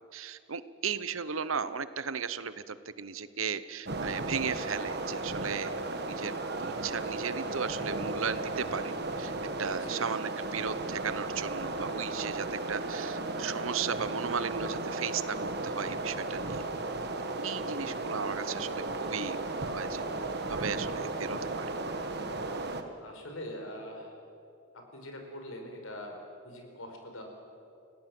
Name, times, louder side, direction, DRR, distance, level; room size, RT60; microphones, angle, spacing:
voice 1, 0.1-5.7 6.1-6.3 6.6-8.9 9.2-9.3 9.6-15.4 15.6-16.6 17.4-20.0 20.5-21.7, right 6 dB, 80° right, 14 dB, 1.0 m, -35 dB
sound 1, 3.9-22.8, right 2 dB, 50° right, 1.7 m, -35 dB
voice 2, 23.0-24.2 24.7-27.2, left 1 dB, 85° left, 3 dB, 4.9 m, -43 dB
30.0 x 17.5 x 7.9 m, 2.6 s
head